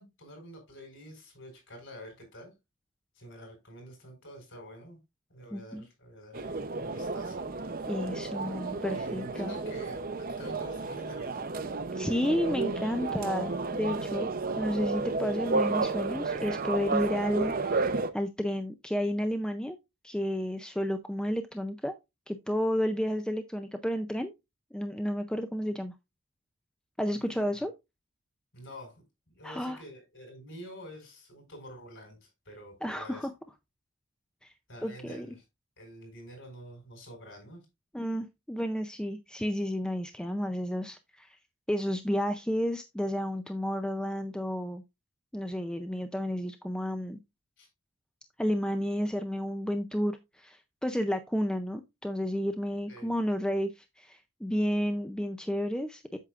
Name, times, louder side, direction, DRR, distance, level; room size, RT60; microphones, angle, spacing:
voice 1, 0.0-2.5 3.1-5.0 5.3-7.4 8.7-11.5 27.1-27.5 28.5-29.0 29.3-33.3 34.7-35.4 35.8-37.6 47.6-47.7 52.9-53.1, equal, 55° left, 4.7 m, -48 dB
voice 2, 5.5-5.9 7.9-9.5 11.9-14.3 14.6-19.8 20.0-21.9 22.3-24.3 24.7-25.9 27.0-27.7 29.4-29.8 32.8-33.3 34.4-34.5 34.8-35.3 37.9-41.4 41.7-44.8 45.3-47.2 48.4-56.2, equal, 5° left, 0.4 m, -31 dB
sound 1, 6.3-18.1, right 3 dB, 40° right, 0.6 m, -32 dB
8.2 x 7.1 x 2.4 m
head